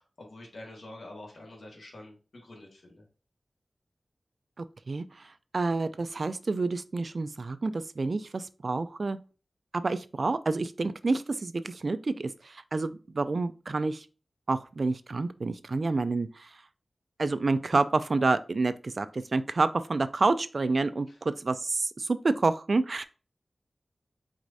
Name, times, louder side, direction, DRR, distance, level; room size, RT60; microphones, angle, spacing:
voice 1, 0.0-3.0 21.1-21.2, left 1 dB, 75° left, 1.6 m, -47 dB
voice 2, 4.6-5.1 5.5-9.2 9.7-14.1 14.5-16.5 17.2-23.0, right 3 dB, 55° right, 0.3 m, -28 dB
4.7 x 4.1 x 2.6 m
wide cardioid pair, 90°, 0 cm